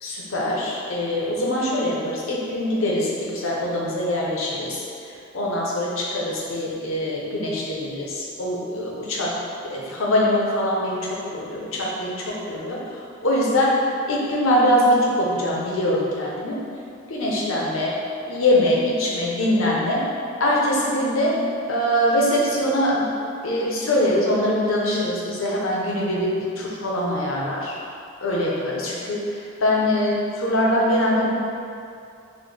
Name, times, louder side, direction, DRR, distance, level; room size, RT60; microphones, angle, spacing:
voice 1, 0.0-4.8 5.3-9.3 9.7-12.8 13.2-13.7 14.1-16.6 17.1-17.9 18.3-20.0 20.4-21.4 21.7-23.1 23.4-26.3 26.6-27.8 28.2-29.2 29.6-31.3, left 1 dB, 70° left, -4 dB, 0.7 m, -23 dB
4.0 x 2.2 x 3.2 m, 2.5 s
head